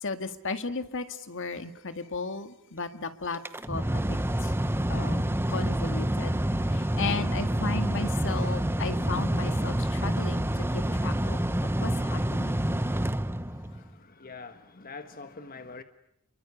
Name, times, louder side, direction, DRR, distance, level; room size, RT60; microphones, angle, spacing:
voice 1, 0.0-3.4 3.7-4.5 4.9-6.4 6.7-11.4 11.8-12.6, left 4 dB, 60° left, 1.9 m, -35 dB
Mechanical fan, 3.3-13.9, right 1 dB, 10° right, 1.0 m, -28 dB
voice 2, 13.7-15.8, left 4 dB, 40° left, 1.5 m, -44 dB
30.0 x 23.5 x 8.4 m
head